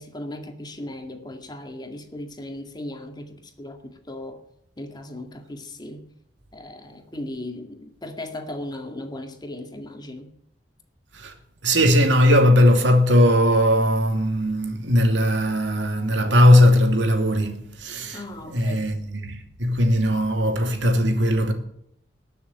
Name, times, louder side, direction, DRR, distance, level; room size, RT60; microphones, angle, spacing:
voice 1, 0.0-4.4 4.8-6.0 6.5-10.3 18.1-19.0, left 1 dB, 25° left, 2.1 m, -37 dB
voice 2, 11.6-18.2 18.5-19.0 19.2-21.5, equal, 85° right, 2.7 m, -18 dB
20.0 x 7.0 x 9.7 m
head